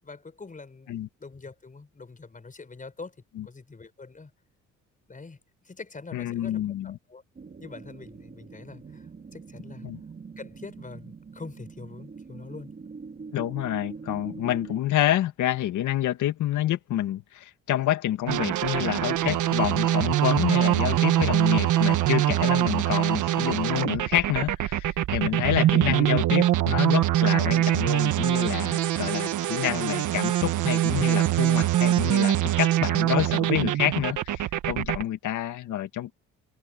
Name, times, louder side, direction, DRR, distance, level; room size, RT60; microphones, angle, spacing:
voice 1, 0.0-3.2 3.4-4.3 5.1-5.4 5.6-7.2 7.6-9.9 10.4-12.7, left 4 dB, 25° left, 5.4 m, -44 dB
voice 2, 6.1-7.0 9.8-10.0 13.3-36.1, left 13 dB, 80° left, 2.1 m, -28 dB
sound 1, 7.3-14.8, right 5 dB, 30° right, 2.1 m, -43 dB
sound 2, 18.3-35.0, right 13 dB, 80° right, 1.5 m, -23 dB
cardioid pair, 90°, 30 cm